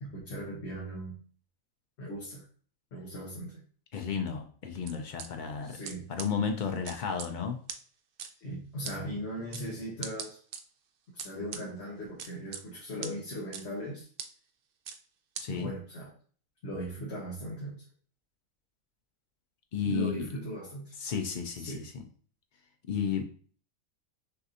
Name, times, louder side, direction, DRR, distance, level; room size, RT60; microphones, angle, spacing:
voice 1, 0.0-1.2 2.0-2.5 2.9-3.6 5.6-6.1 8.4-10.4 11.1-14.1 15.5-16.1 16.6-17.8 19.8-21.0 21.5-21.8, right 1 dB, 55° left, -3 dB, 1.2 m, -38 dB
voice 2, 3.9-5.8 6.1-7.6 15.4-15.7 19.7-20.3 21.0-22.0 22.9-23.3, left 7 dB, 80° left, 5 dB, 0.4 m, -33 dB
sound 1, 4.9-5.3 5.8-5.9 6.2-6.3 6.9-7.3 7.7-7.8 8.2-8.3 8.8-9.0 9.5-9.6 10.0-10.6 11.2-11.6 12.2-12.6 13.0-13.1 13.5-13.6 14.2-14.3 14.9-15.0 15.4-15.5, right 7 dB, 80° right, 0.5 m, -39 dB
6.4 x 2.6 x 2.7 m, 0.44 s
omnidirectional pair, 1.5 m